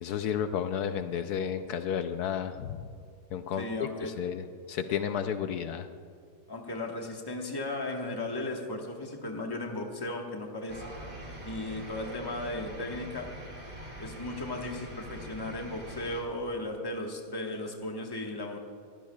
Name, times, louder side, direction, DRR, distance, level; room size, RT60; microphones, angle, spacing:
voice 1, 0.0-2.9 3.3-3.6 4.0-5.9, left 8 dB, 75° left, 9 dB, 1.1 m, -32 dB
voice 2, 3.6-4.1 6.5-10.8 11.4-13.3 14.0-18.6, left 2 dB, 15° left, 1 dB, 1.1 m, -36 dB
sound 1, 10.7-16.2, right 1 dB, 25° right, 2.1 m, -43 dB
22.0 x 15.5 x 2.3 m, 2.3 s
omnidirectional pair, 1.7 m